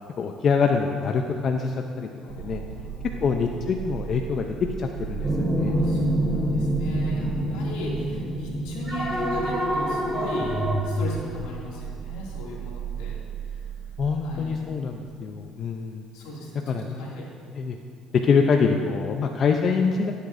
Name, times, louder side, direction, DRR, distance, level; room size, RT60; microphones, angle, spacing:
voice 1, 0.2-2.1 2.4-2.6 3.2-4.4 4.8-5.8 14.0-16.0 16.7-17.1 17.5-17.8 18.1-20.1, left 5 dB, 50° left, 4 dB, 0.6 m, -25 dB
voice 2, 2.3-3.2 5.6-13.2 13.5-13.6 14.2-14.6 16.1-17.3, left 1 dB, 85° left, -4 dB, 2.4 m, -37 dB
sound 1, 2.3-15.2, right 9 dB, 75° right, 0.5 m, -36 dB
sound 2, 5.2-10.8, equal, 10° right, 2.2 m, -26 dB
16.5 x 8.2 x 2.6 m, 2.4 s
supercardioid pair, 80°, 0 cm